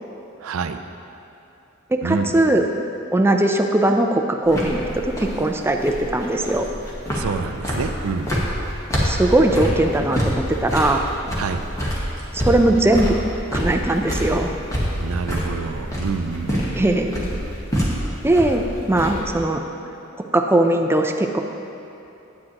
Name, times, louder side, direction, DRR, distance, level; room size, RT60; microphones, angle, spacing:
voice 1, 0.4-0.8 2.0-2.3 7.1-8.3 11.4-11.6 15.0-16.6, right 5 dB, 90° right, 9 dB, 0.4 m, -27 dB
voice 2, 1.9-2.7 3.1-6.7 9.0-11.1 12.4-13.1 13.5-14.5 16.7-17.1 18.2-19.6 20.3-21.4, right 1 dB, 10° right, 4 dB, 0.4 m, -19 dB
sound 1, 4.5-19.3, equal, 15° left, 1.2 m, -26 dB
9.7 x 8.8 x 2.9 m, 2.8 s
head